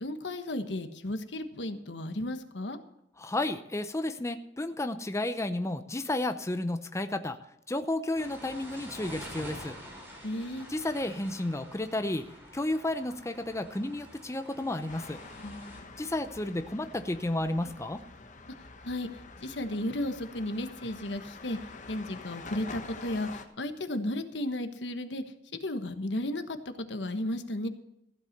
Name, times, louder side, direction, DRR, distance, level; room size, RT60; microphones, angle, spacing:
voice 1, 0.0-2.8 10.2-10.7 15.4-15.8 18.8-19.1 19.4-21.6 21.9-25.2 25.6-27.7, left 1 dB, 75° left, 9 dB, 1.3 m, -34 dB
voice 2, 3.2-7.4 7.7-9.7 10.7-12.2 12.5-15.2 16.0-18.0, left 1 dB, 15° left, 8 dB, 0.6 m, -32 dB
sound 1, 8.1-15.8, equal, 10° right, 4.7 m, -47 dB
sound 2, 14.9-23.5, left 3 dB, 45° left, 1.3 m, -47 dB
15.5 x 8.1 x 6.6 m, 0.83 s
head